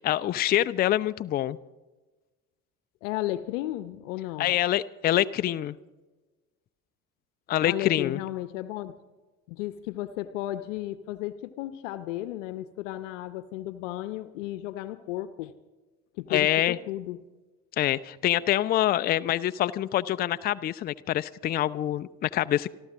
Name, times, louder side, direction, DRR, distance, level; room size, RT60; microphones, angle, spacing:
voice 1, 0.0-1.6 4.4-5.8 7.5-8.2 16.3-16.8 17.8-22.7, left 13 dB, 25° left, 14 dB, 0.4 m, -25 dB
voice 2, 3.0-4.5 7.6-9.0 9.5-15.5 16.2-17.2, left 14 dB, 60° left, 13 dB, 0.8 m, -34 dB
27.5 x 12.0 x 3.6 m, 1.2 s
figure-of-eight pair, 60°, 42 cm